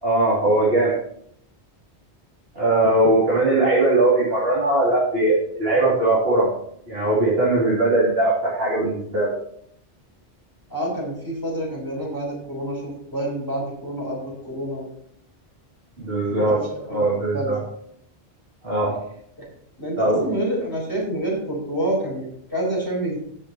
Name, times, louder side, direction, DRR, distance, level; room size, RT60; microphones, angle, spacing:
voice 1, 0.0-1.0 2.5-6.5 6.9-9.3 16.0-17.6 18.6-19.0 20.0-20.2, right 2 dB, 60° right, -8 dB, 3.2 m, -20 dB
voice 2, 10.7-14.9 16.3-17.5 19.4-19.5 19.8-23.2, right 1 dB, 20° left, -3 dB, 4.3 m, -28 dB
16.5 x 6.8 x 3.0 m, 0.69 s
omnidirectional pair, 1.1 m